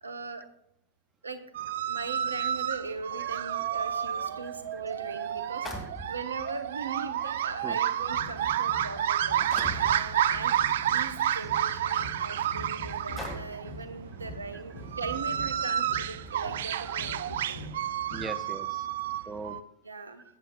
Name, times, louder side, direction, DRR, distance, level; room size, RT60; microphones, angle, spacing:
voice 1, 0.0-0.4 1.2-1.4 1.9-10.6 10.9-17.6 19.8-20.2, right 4 dB, 75° right, 9 dB, 1.0 m, -39 dB
sound 1, 1.5-19.6, right 10 dB, 60° right, 0.4 m, -30 dB
sound 2, 4.5-4.6 5.6-6.4 7.4-7.5 8.2-8.5 9.5-10.0 11.3-11.4 12.1-12.2 13.2-13.7, left 1 dB, 15° left, 2.3 m, -39 dB
voice 2, 7.4-7.8 8.4-8.5 9.2-9.3 11.3-11.4 11.9-12.2 16.9-17.0 18.1-18.9 19.3-19.6, right 4 dB, 15° right, 11 dB, 0.9 m, -41 dB
sound 3, 8.0-18.3, left 1 dB, 85° left, 4.4 m, -45 dB
14.5 x 9.2 x 2.3 m, 0.78 s
figure-of-eight pair, 90°, 0 cm